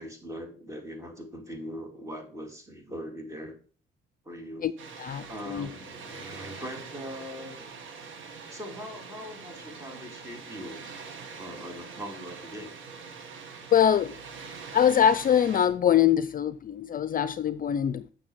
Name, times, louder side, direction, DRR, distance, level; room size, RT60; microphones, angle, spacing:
voice 1, 0.0-3.6 4.2-4.7 5.3-7.7 8.5-10.8 11.4-12.7, equal, 15° right, 2.5 m, -41 dB
Water, 4.8-15.7, right 5 dB, 75° right, 1.6 m, -44 dB
voice 2, 5.0-5.7 13.7-14.2 14.7-18.1, left 9 dB, 45° left, 0.5 m, -23 dB
8.4 x 6.3 x 4.7 m
cardioid pair, 90°, 20 cm